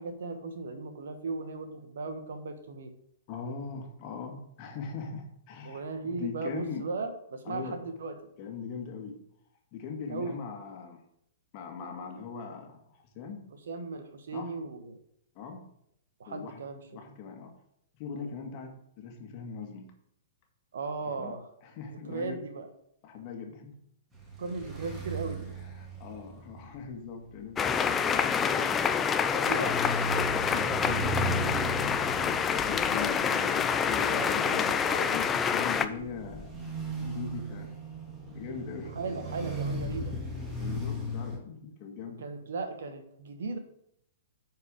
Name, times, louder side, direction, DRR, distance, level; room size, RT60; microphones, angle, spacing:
voice 1, 0.0-2.9 5.6-8.2 10.1-10.4 13.7-15.0 16.2-17.2 18.1-18.3 20.7-21.5 21.9-22.7 24.4-25.5 29.3-29.8 33.9-35.2 38.9-40.1 42.2-43.6, right 3 dB, 65° right, 8 dB, 1.2 m, -37 dB
voice 2, 3.3-6.9 7.5-7.8 8.4-9.2 9.7-11.0 11.5-13.4 14.3-14.5 15.4-15.7 16.3-16.6 16.9-17.6 17.9-19.9 21.0-21.3 21.6-22.4 23.0-23.8 25.6-28.8 30.2-31.5 31.8-32.4 32.7-36.7 37.0-37.8 38.2-39.0 40.6-42.3, left 5 dB, 40° left, 3 dB, 1.8 m, -40 dB
sound 1, 24.1-41.4, right 1 dB, 15° right, 2.1 m, -37 dB
sound 2, 27.6-35.8, left 7 dB, 20° left, 0.5 m, -27 dB
9.6 x 4.8 x 5.1 m, 0.73 s
figure-of-eight pair, 110°, 0 cm